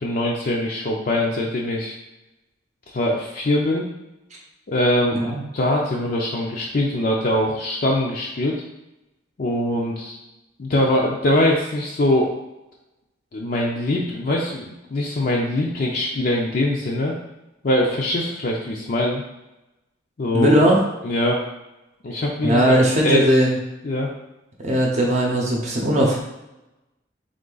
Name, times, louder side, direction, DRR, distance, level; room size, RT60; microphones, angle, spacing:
voice 1, 0.0-2.0 2.9-3.9 4.7-8.6 9.4-10.2 10.6-12.3 13.3-17.2 17.6-19.2 20.2-20.5 21.0-21.4 22.0-22.7 23.0-23.2 23.8-24.1, left 1 dB, 50° left, -2 dB, 0.5 m, -22 dB
voice 2, 20.3-20.8 22.4-23.6 24.6-26.2, equal, 40° right, -2 dB, 0.7 m, -18 dB
3.7 x 3.2 x 3.9 m, 0.96 s
head